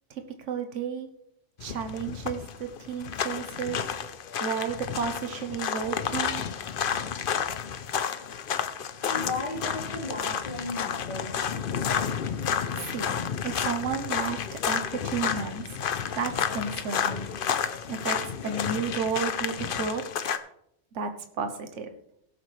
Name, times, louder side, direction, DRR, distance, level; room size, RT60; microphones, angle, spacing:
voice 1, 0.1-1.1 1.6-3.8 4.4-6.4 12.0-12.3 12.7-13.2 13.4-15.6 16.1-17.3 17.9-20.0 20.9-21.9, right 6 dB, 80° right, 6 dB, 1.3 m, -32 dB
sound 1, 1.6-20.4, left 7 dB, 55° left, 0.8 m, -31 dB
voice 2, 9.1-11.5, left 2 dB, 40° left, -7 dB, 4.0 m, -35 dB
17.5 x 7.8 x 3.3 m, 0.76 s
omnidirectional pair, 1.2 m